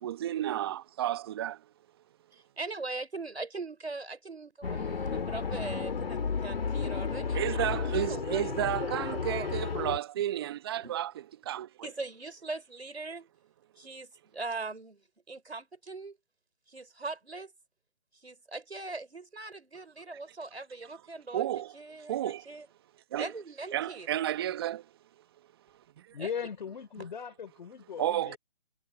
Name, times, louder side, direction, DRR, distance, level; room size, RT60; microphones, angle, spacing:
voice 1, 0.0-1.6 7.3-11.1 11.4-11.7 21.3-21.7 22.1-22.5 23.1-23.3 23.7-24.8 28.0-28.4, right 12 dB, 25° right, 1.1 m, -32 dB
voice 2, 2.3-7.5 7.9-9.5 10.8-11.0 11.8-13.3 13.8-16.2 16.7-17.5 18.2-22.7 23.1-24.1 26.2-26.3, right 3 dB, 90° right, 5.1 m, -41 dB
sound 1, 4.6-10.0, left 5 dB, 65° left, 2.2 m, -32 dB
voice 3, 26.1-28.4, left 7 dB, 50° left, 3.6 m, -38 dB
figure-of-eight pair, 155°, 31 cm